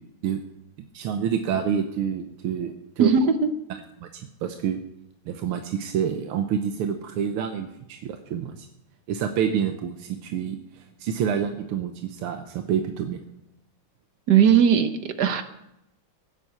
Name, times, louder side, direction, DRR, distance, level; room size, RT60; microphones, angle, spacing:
voice 1, 0.9-3.1 4.0-4.1 4.4-4.8 5.3-8.7 9.1-10.6 11.0-13.2, right 8 dB, 90° right, 6 dB, 1.8 m, -27 dB
voice 2, 3.0-3.5 14.3-15.4, right 7 dB, 60° right, 9 dB, 1.3 m, -18 dB
16.5 x 7.5 x 7.8 m, 0.86 s
omnidirectional pair, 2.3 m